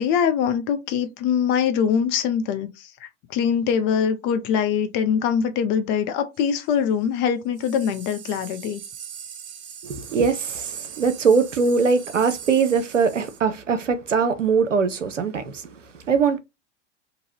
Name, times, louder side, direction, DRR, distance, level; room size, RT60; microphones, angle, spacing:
voice 1, 0.0-8.8, left 7 dB, 30° left, 0.6 m, -23 dB
sound 1, 6.4-6.7 7.6-13.4, right 8 dB, 50° right, 0.8 m, -41 dB
voice 2, 9.8-16.4, right 5 dB, 90° right, 0.6 m, -22 dB
2.9 x 2.5 x 2.7 m
figure-of-eight pair, 95°, 36 cm